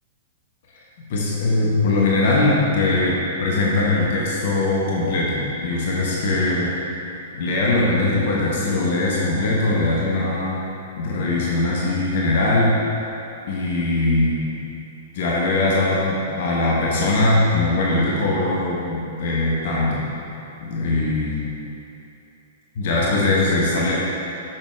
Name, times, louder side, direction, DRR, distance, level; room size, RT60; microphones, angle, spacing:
voice 1, 1.1-6.7 7.3-10.6 11.0-12.7 13.5-14.6 15.1-20.1 20.6-21.4 22.7-23.9, left 2 dB, 50° left, -4 dB, 1.1 m, -21 dB
8.7 x 6.3 x 3.1 m, 2.9 s
figure-of-eight pair, 105°, 0 cm